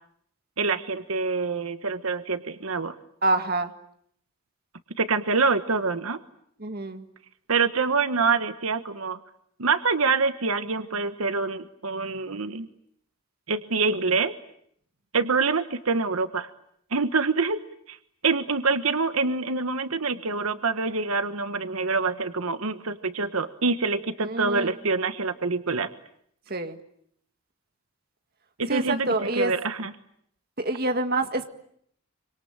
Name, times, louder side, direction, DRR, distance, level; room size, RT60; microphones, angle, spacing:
voice 1, 0.6-3.0 5.0-6.2 7.5-9.2 9.6-12.7 13.5-14.4 15.1-16.5 16.9-18.0 18.2-25.9 28.6-29.9, right 4 dB, 80° right, 10 dB, 1.3 m, -26 dB
voice 2, 3.2-3.7 6.6-7.0 24.2-24.7 26.5-26.8 28.7-29.5 30.6-31.5, right 2 dB, 45° right, 7 dB, 1.8 m, -26 dB
26.0 x 25.5 x 8.8 m, 0.69 s
head